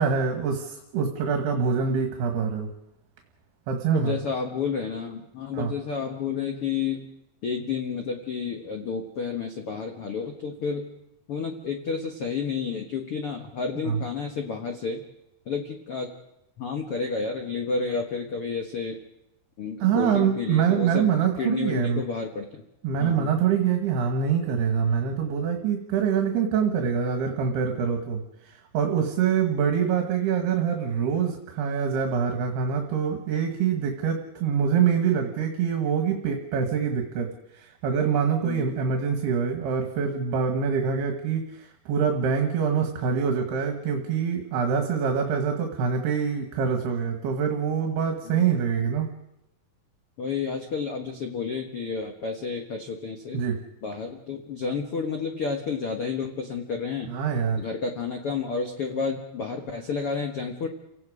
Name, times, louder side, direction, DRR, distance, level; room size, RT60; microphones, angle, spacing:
voice 1, 0.0-2.7 3.7-4.1 5.5-5.7 13.9-14.0 19.8-22.0 22.8-37.3 37.5-49.1 53.3-53.6 57.1-57.6, right 7 dB, 75° right, 3 dB, 3.6 m, -25 dB
voice 2, 3.9-7.1 7.4-10.9 11.3-15.0 15.4-16.1 16.6-19.0 19.6-22.6 23.0-23.3 38.4-38.7 48.2-48.4 50.2-53.4 53.8-57.1 57.6-60.7, left 5 dB, 55° left, 3 dB, 1.6 m, -30 dB
30.0 x 18.0 x 5.0 m, 0.83 s
omnidirectional pair, 4.8 m